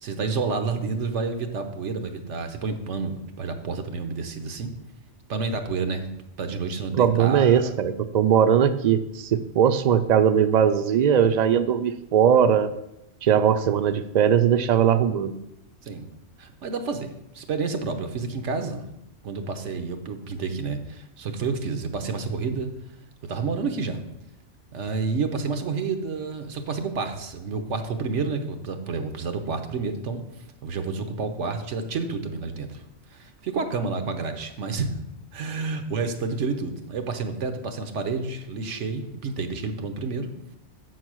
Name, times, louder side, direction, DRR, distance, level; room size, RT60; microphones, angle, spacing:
voice 1, 0.0-4.7 5.3-6.1 6.4-7.7 15.8-16.1 16.4-18.8 19.2-22.7 23.2-24.0 24.7-30.2 30.6-32.8 33.1-34.9 35.3-40.3, right 4 dB, 90° right, 6 dB, 1.2 m, -29 dB
voice 2, 6.9-12.7 13.2-15.4, right 8 dB, 55° right, 12 dB, 0.5 m, -20 dB
7.2 x 4.6 x 6.1 m, 0.83 s
omnidirectional pair, 1.2 m